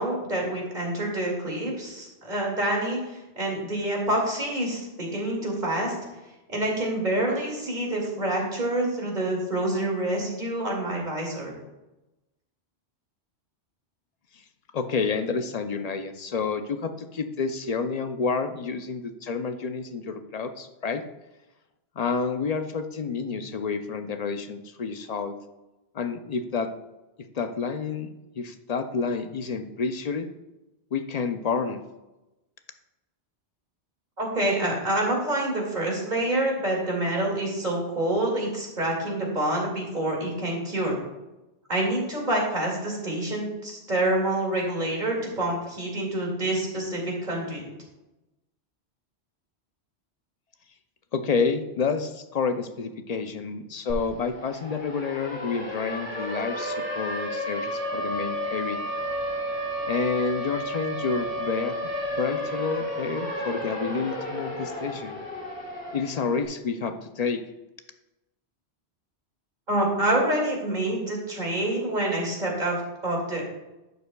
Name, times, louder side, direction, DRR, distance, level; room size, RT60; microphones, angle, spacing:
voice 1, 0.0-6.0 6.5-11.5 34.2-40.9 41.7-47.6 69.7-73.5, right 1 dB, 45° right, -2 dB, 2.3 m, -27 dB
voice 2, 14.7-21.0 22.0-25.4 25.9-26.7 27.3-28.1 28.4-30.3 30.9-31.8 51.1-58.8 59.9-61.8 62.1-65.2 65.9-67.4, left 5 dB, 50° left, 8 dB, 0.5 m, -29 dB
Siren, 53.9-54.0 54.3-66.3, equal, 10° right, 2.5 m, -32 dB
11.5 x 6.8 x 2.2 m, 1.0 s
omnidirectional pair, 1.1 m